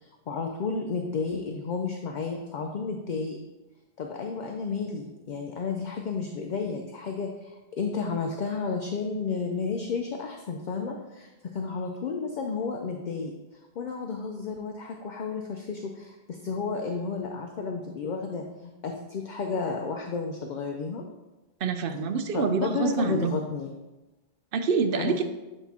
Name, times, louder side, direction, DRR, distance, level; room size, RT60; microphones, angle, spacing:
voice 1, 0.0-3.4 4.0-13.3 13.8-21.0 22.3-23.8 25.0-25.2, left 4 dB, 55° left, 2 dB, 0.6 m, -32 dB
voice 2, 21.6-23.4 24.5-25.2, right 5 dB, 65° right, 8 dB, 0.7 m, -26 dB
8.1 x 3.0 x 4.1 m, 1.1 s
omnidirectional pair, 1.1 m